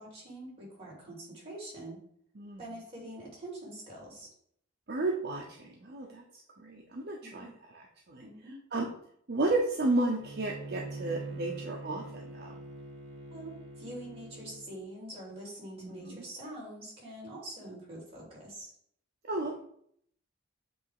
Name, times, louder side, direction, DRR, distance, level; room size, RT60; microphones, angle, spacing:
voice 1, 0.0-2.0 2.6-4.3 7.2-7.5 8.2-8.6 13.3-18.7, right 1 dB, 30° right, -6 dB, 2.8 m, -45 dB
voice 2, 4.9-6.2 6.6-8.2 8.7-8.9 9.3-12.6 15.8-16.2 19.2-19.6, right 2 dB, 55° right, 0 dB, 0.7 m, -33 dB
Bowed string instrument, 10.2-14.7, right 2 dB, 75° right, 1.0 m, -44 dB
8.0 x 2.9 x 4.8 m, 0.66 s
head